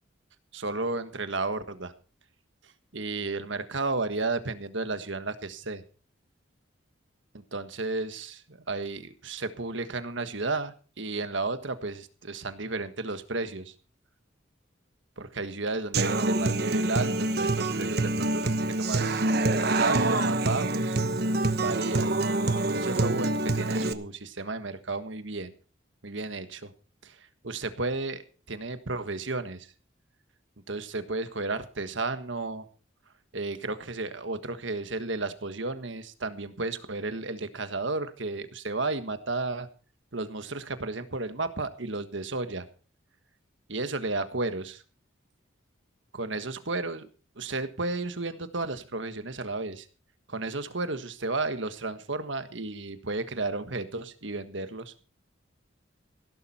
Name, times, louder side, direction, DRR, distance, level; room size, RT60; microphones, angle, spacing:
voice 1, 0.5-1.9 2.9-5.8 7.3-13.7 15.2-19.2 19.6-21.0 21.6-22.1 22.7-25.5 26.0-26.7 27.0-28.2 28.5-29.7 30.7-32.7 33.3-39.7 40.1-42.6 43.7-44.8 46.1-47.1 47.3-49.9 50.3-54.9, right 3 dB, 65° right, 10 dB, 1.5 m, -33 dB
Human voice / Acoustic guitar, 15.9-23.9, right 2 dB, 50° right, 1.1 m, -26 dB
17.0 x 11.5 x 4.3 m, 0.37 s
head